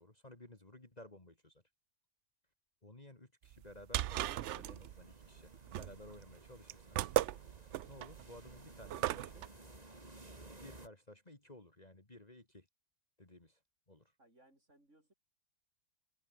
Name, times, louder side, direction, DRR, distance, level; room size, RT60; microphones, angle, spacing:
voice 1, 0.0-1.6 2.8-7.1 7.9-9.4 10.6-12.7 13.2-13.6 13.9-14.1, left 1 dB, 25° left, 2.7 m, -56 dB
sound 1, 3.5-9.5, right 13 dB, 65° right, 0.7 m, -37 dB
sound 2, 4.6-10.9, right 2 dB, 25° right, 2.9 m, -56 dB
voice 2, 14.2-15.1, right 1 dB, 50° right, 8.5 m, -66 dB
omnidirectional pair, 1.6 m